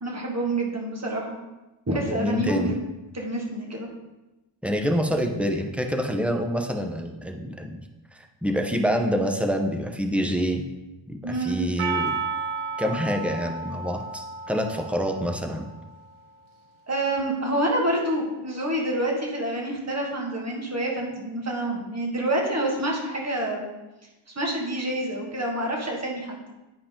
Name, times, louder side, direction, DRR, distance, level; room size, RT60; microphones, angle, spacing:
voice 1, 0.0-1.4 1.9-2.7 3.1-3.9 11.2-11.6 16.9-23.7 24.4-26.4, right 1 dB, 30° right, -1 dB, 1.9 m, -27 dB
voice 2, 2.1-2.7 4.6-7.8 8.4-10.7 11.1-12.2 12.8-15.7, equal, 5° right, 3 dB, 0.8 m, -26 dB
Percussion, 11.8-16.1, right 4 dB, 80° right, 0.9 m, -32 dB
10.0 x 4.7 x 3.8 m, 1.0 s
wide cardioid pair, 100°, 48 cm